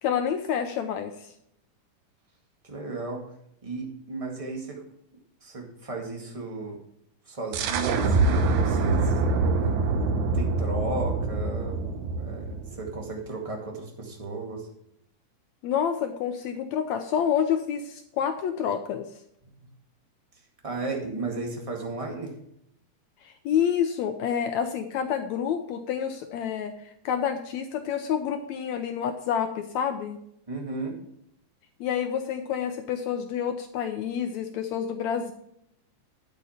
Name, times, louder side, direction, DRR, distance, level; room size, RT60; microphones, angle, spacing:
voice 1, 0.0-1.3 15.6-19.1 23.2-30.2 31.8-35.3, left 8 dB, 75° left, 7 dB, 1.7 m, -28 dB
voice 2, 2.6-3.2 3.6-4.8 5.4-6.8 7.2-9.7 10.3-11.8 12.2-14.6 19.6-19.7 20.6-22.3 30.5-31.0, right 3 dB, 20° right, 0 dB, 1.0 m, -34 dB
sound 1, 7.5-13.0, right 3 dB, 70° right, 2.0 m, -25 dB
9.4 x 8.3 x 4.3 m, 0.74 s
omnidirectional pair, 3.8 m